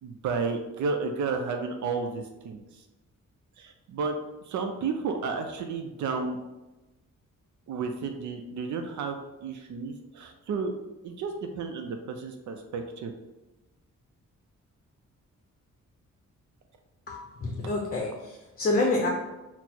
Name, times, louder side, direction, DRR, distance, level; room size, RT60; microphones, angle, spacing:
voice 1, 0.0-2.8 3.6-4.2 4.4-6.4 7.7-10.7 11.0-13.1, right 4 dB, 70° right, 5 dB, 0.5 m, -32 dB
voice 2, 17.1-19.1, left 2 dB, 30° left, -1 dB, 0.6 m, -28 dB
4.3 x 2.0 x 4.2 m, 1.0 s
wide cardioid pair, 135°, 30 cm